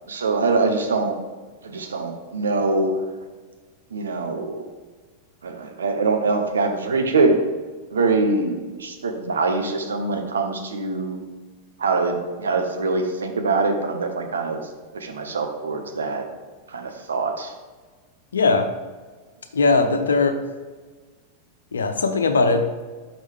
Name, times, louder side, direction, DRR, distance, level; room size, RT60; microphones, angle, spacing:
voice 1, 0.1-1.2 1.6-3.0 3.9-4.6 5.4-7.4 7.9-11.2 11.8-14.6 14.9-16.2 16.7-17.5, right 3 dB, 70° right, 4 dB, 0.9 m, -23 dB
voice 2, 18.3-18.7 19.5-20.4 21.7-22.7, left 3 dB, 70° left, 7 dB, 0.6 m, -19 dB
6.2 x 6.0 x 3.5 m, 1.4 s
figure-of-eight pair, 90°, 0 cm